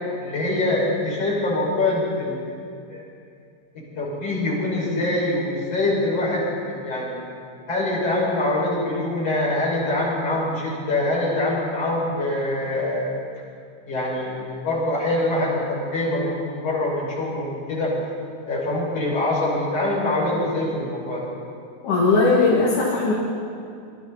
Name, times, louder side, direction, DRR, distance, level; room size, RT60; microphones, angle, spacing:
voice 1, 0.2-2.4 2.9-3.0 4.0-7.2 7.7-13.1 13.9-17.9 18.4-21.3, left 2 dB, 50° left, -6 dB, 7.6 m, -24 dB
voice 2, 21.8-23.1, left 3 dB, 75° left, -6 dB, 4.1 m, -18 dB
26.0 x 23.5 x 4.4 m, 2.4 s
omnidirectional pair, 3.6 m